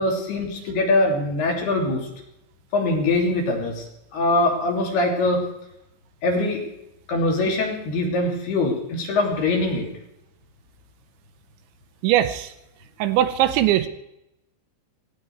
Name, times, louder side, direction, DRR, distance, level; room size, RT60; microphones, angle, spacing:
voice 1, 0.0-2.0 2.7-3.9 4.1-5.4 6.2-6.6 7.1-9.9, left 2 dB, 55° left, 0 dB, 4.9 m, -22 dB
voice 2, 12.0-12.5 13.0-13.9, right 12 dB, 80° right, 11 dB, 3.0 m, -20 dB
17.5 x 17.0 x 4.8 m, 0.84 s
omnidirectional pair, 5.6 m